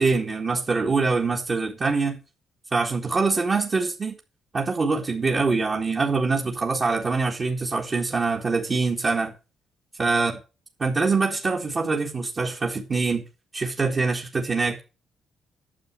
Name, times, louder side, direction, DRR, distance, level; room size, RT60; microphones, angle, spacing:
voice 1, 0.0-2.2 2.7-4.1 4.5-9.3 10.0-10.3 10.8-13.3 13.5-14.8, right 4 dB, 35° right, 1.8 m, -24 dB
9.4 x 7.0 x 7.4 m
cardioid pair, 90°, 0 cm